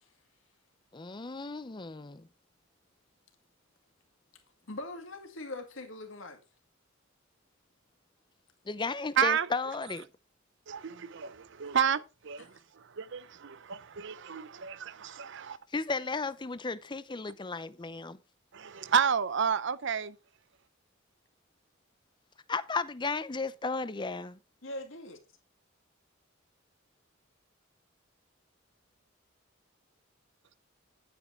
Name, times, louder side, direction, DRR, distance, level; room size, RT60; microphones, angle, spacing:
voice 1, 0.9-2.3 8.7-10.1 15.7-18.2 22.5-24.4, left 4 dB, 25° left, 0.6 m, -34 dB
voice 2, 4.7-6.4 12.4-12.5 24.6-25.2, left 2 dB, 70° left, 2.2 m, -41 dB
voice 3, 10.7-12.5 12.8-15.6 18.5-20.2, right 7 dB, 60° right, 0.6 m, -30 dB
10.5 x 9.1 x 3.4 m
head